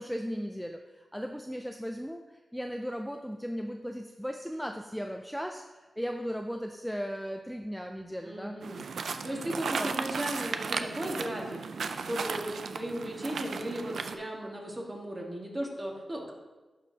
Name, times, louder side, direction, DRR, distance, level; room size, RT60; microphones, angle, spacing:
voice 1, 0.0-2.2 2.5-5.6 6.0-8.6 9.8-9.9, equal, ahead, 3 dB, 0.4 m, -36 dB
voice 2, 8.2-11.6 12.1-16.3, right 1 dB, 25° right, -1 dB, 1.6 m, -36 dB
sound 1, 8.6-14.2, right 5 dB, 80° right, 0.4 m, -35 dB
11.0 x 5.0 x 2.8 m, 1.2 s
cardioid pair, 75°, 0 cm